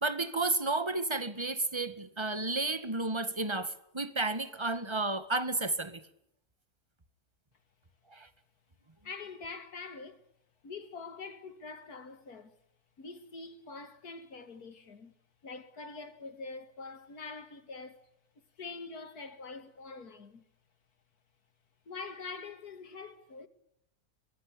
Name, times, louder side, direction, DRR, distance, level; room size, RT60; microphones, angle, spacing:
voice 1, 0.0-6.0 8.1-8.3, right 2 dB, 20° right, 1.8 m, -32 dB
voice 2, 9.0-10.3 10.6-12.5 13.0-15.1 15.4-18.1 18.6-20.4 21.9-23.5, left 4 dB, 85° left, 2.8 m, -44 dB
23.5 x 23.0 x 8.5 m
omnidirectional pair, 1.6 m